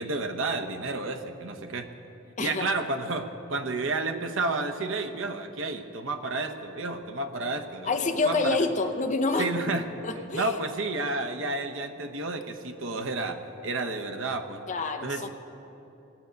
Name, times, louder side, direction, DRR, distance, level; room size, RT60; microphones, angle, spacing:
voice 1, 0.0-1.9 2.4-8.6 9.4-10.0 10.3-14.6 15.0-15.3, right 3 dB, 75° right, 5 dB, 0.9 m, -31 dB
voice 2, 2.4-2.7 7.9-9.5 10.0-10.6 14.7-15.3, left 3 dB, 35° left, 6 dB, 0.8 m, -27 dB
19.0 x 8.1 x 5.2 m, 3.0 s
head